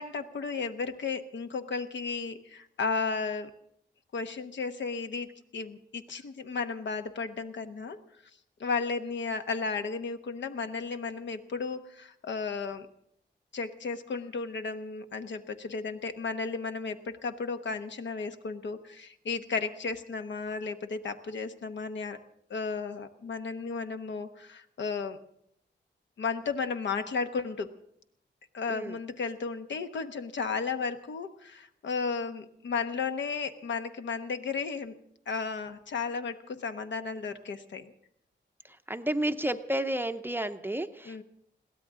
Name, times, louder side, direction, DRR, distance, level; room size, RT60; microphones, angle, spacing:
voice 1, 0.0-3.5 4.1-8.0 8.6-12.9 13.5-22.2 22.5-25.2 26.2-27.7 28.5-34.9 35.3-37.9 41.1-41.2, left 4 dB, 75° left, 8 dB, 1.1 m, -34 dB
voice 2, 38.6-41.2, right 1 dB, 10° right, 8 dB, 0.6 m, -31 dB
22.5 x 16.5 x 3.7 m, 0.70 s
wide cardioid pair, 145°, 19 cm